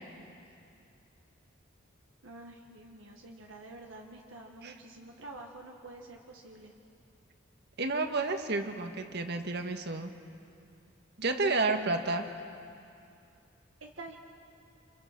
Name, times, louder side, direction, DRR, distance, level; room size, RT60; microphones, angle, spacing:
voice 1, 2.2-6.7 11.7-12.1 13.8-14.2, right 2 dB, 70° right, 1 dB, 1.6 m, -48 dB
voice 2, 7.8-10.1 11.2-12.2, right 3 dB, 55° right, 6 dB, 1.6 m, -30 dB
29.5 x 27.5 x 6.0 m, 2.6 s
head